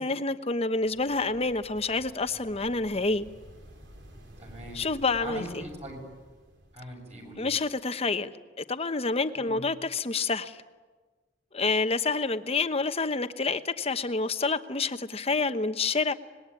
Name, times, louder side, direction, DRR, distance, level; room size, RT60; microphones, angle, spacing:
voice 1, 0.0-3.3 4.7-5.6 7.4-10.6 11.5-16.1, left 3 dB, 30° left, 1.0 m, -28 dB
sound 1, 0.8-7.6, equal, 65° right, 3.8 m, -51 dB
voice 2, 4.4-4.8 5.2-6.0 6.7-7.5 9.4-9.6, right 1 dB, 35° right, 7.1 m, -41 dB
25.5 x 20.5 x 9.9 m
head